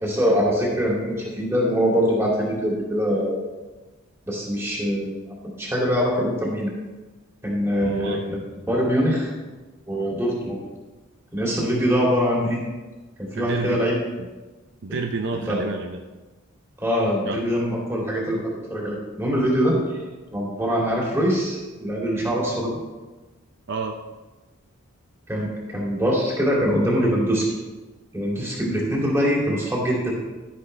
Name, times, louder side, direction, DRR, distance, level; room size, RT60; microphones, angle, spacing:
voice 1, 0.0-3.4 4.2-6.7 7.4-8.4 8.7-9.3 9.9-10.6 11.3-12.6 13.2-14.0 14.9-15.0 15.3-15.6 16.8-20.0 20.3-22.8 25.3-27.5 28.1-30.1, equal, 10° right, -3 dB, 2.5 m, -23 dB
voice 2, 7.8-8.2 13.3-13.9 14.2-14.3 14.8-16.0 17.3-17.4 23.7-24.0, right 4 dB, 55° right, 5 dB, 0.5 m, -30 dB
11.5 x 10.0 x 3.3 m, 1.2 s
head